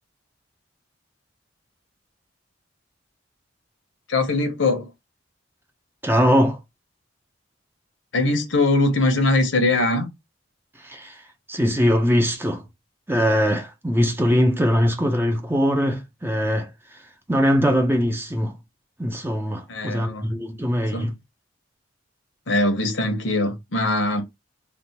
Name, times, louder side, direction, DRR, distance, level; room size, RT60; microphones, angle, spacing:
voice 1, 4.1-4.9 8.1-10.1 19.7-20.3 20.9-21.1 22.5-24.2, left 2 dB, 70° left, 1.1 m, -21 dB
voice 2, 6.0-6.6 10.8-11.2 11.5-12.6 13.1-16.7 17.3-18.5 19.0-21.1, equal, 10° right, 0.7 m, -21 dB
3.5 x 2.5 x 4.2 m
head